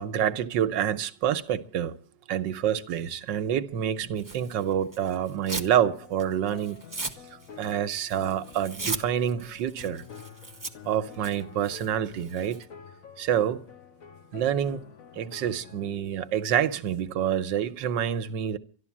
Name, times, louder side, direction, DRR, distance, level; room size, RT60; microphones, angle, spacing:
voice 1, 0.0-2.0 2.3-6.8 7.6-10.0 10.8-12.6 13.2-13.6 14.3-14.8 15.2-18.6, right 9 dB, 90° right, 1.5 m, -27 dB
Tearing, 4.2-5.8 6.1-12.6, right 3 dB, 15° right, 0.7 m, -38 dB
sound 1, 5.5-16.0, left 8 dB, 55° left, 1.2 m, -49 dB
12.5 x 12.0 x 7.2 m
omnidirectional pair, 1.9 m